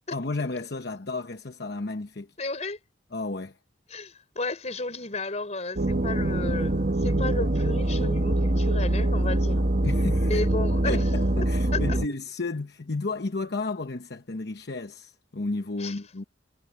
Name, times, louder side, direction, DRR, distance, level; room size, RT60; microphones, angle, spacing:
voice 1, 0.1-2.3 3.1-3.6 9.8-10.4 10.9-16.2, left 3 dB, 60° left, 1.0 m, -32 dB
voice 2, 2.4-2.8 3.9-9.6 10.2-11.1 11.7-12.0 15.8-16.0, left 3 dB, 35° left, 5.0 m, -33 dB
sound 1, 5.8-12.1, right 1 dB, 50° right, 1.3 m, -24 dB
head